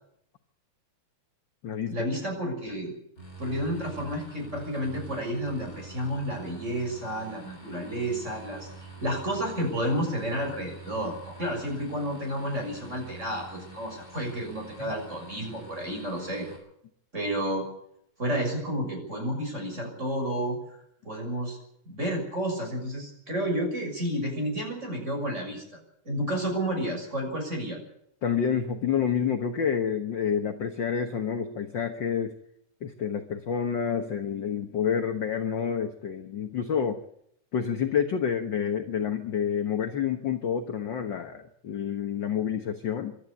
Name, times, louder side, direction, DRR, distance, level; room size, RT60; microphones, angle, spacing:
voice 1, 1.9-2.9 3.4-8.7 9.0-16.5 17.1-17.6 18.2-20.6 21.0-21.6 21.8-25.8 26.0-27.8, equal, 20° right, 2 dB, 6.6 m, -31 dB
sound 1, 3.2-16.6, right 2 dB, 20° left, 7.9 m, -46 dB
voice 2, 28.2-32.3 32.8-37.0 37.5-43.1, left 7 dB, 50° left, 5 dB, 1.4 m, -28 dB
25.0 x 12.5 x 8.3 m, 0.74 s
omnidirectional pair, 3.5 m